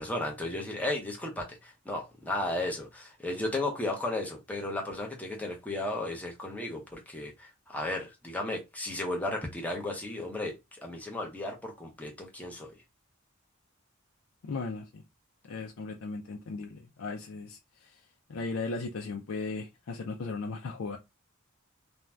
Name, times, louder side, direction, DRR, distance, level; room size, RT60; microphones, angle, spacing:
voice 1, 0.0-10.6 10.8-12.7, left 2 dB, 5° left, 0.7 m, -34 dB
voice 2, 14.4-15.0 15.4-18.0 18.3-21.0, left 3 dB, 80° left, 0.4 m, -37 dB
2.6 x 2.2 x 3.3 m
head